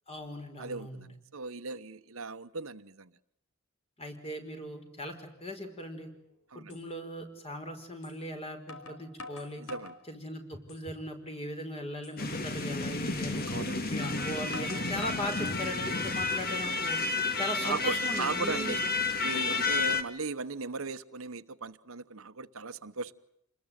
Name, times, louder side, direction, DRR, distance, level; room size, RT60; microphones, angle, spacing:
voice 1, 0.1-1.1 4.0-6.1 6.6-9.6 10.1-13.5 13.9-17.0 17.4-18.8, left 1 dB, 30° left, 5 dB, 5.2 m, -38 dB
voice 2, 0.6-3.1 6.5-6.8 9.6-9.9 13.5-13.8 17.6-18.8 19.2-23.1, right 4 dB, 70° right, 11 dB, 1.1 m, -37 dB
sound 1, 6.1-6.2 6.7-6.8 8.0-8.2 8.7-10.0 10.5-11.1 11.4-11.5 12.0-12.2 13.4-13.5 14.0-15.3 15.8-16.4, left 3 dB, 80° left, 4.2 m, -46 dB
sound 2, 12.2-20.0, left 3 dB, 45° left, 2.3 m, -31 dB
28.5 x 21.0 x 9.3 m, 0.74 s
head